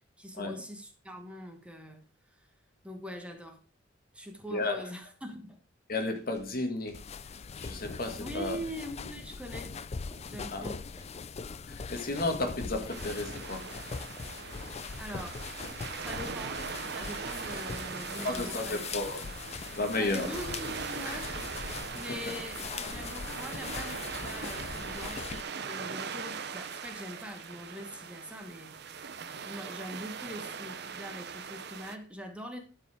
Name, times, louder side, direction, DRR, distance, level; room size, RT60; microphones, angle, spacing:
voice 1, 0.2-2.4 2.8-3.6 4.1-5.6 8.2-9.7 10.3-10.8 15.0-15.5 16.0-16.6 16.9-18.9 20.0-21.6 21.9-29.0 29.4-32.6, equal, 5° right, 1.3 m, -43 dB
voice 2, 4.5-4.9 5.9-7.0 7.6-8.6 10.5-10.7 11.7-13.7 18.2-19.3 19.7-20.3 21.1-21.3 22.3-22.4, left 2 dB, 50° left, 1.7 m, -33 dB
sound 1, 6.2-7.5 7.8-16.8 17.2-17.3 17.5-17.6 17.8-18.1 18.4-18.7, left 1 dB, 15° left, 2.1 m, -55 dB
sound 2, 6.9-25.4, left 5 dB, 35° left, 0.4 m, -41 dB
sound 3, 12.9-32.0, right 6 dB, 60° right, 0.8 m, -40 dB
12.0 x 4.9 x 4.9 m
head